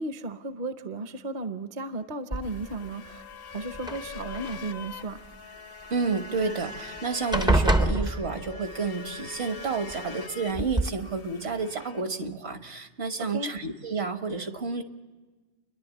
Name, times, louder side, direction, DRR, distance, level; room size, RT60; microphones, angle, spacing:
voice 1, 0.0-3.2 3.5-5.2 13.3-13.5, right 2 dB, 45° right, 9 dB, 0.9 m, -35 dB
sound 1, 2.3-2.9 3.7-4.6 6.4-6.5 6.8-7.0 7.3-8.8 9.9-10.0 10.5-10.9, right 1 dB, 5° right, 0.4 m, -26 dB
sound 2, 2.4-12.0, left 5 dB, 60° left, 0.9 m, -43 dB
voice 2, 5.9-14.8, right 4 dB, 70° right, 7 dB, 1.6 m, -30 dB
29.0 x 11.0 x 8.3 m, 1.3 s
omnidirectional pair, 1.2 m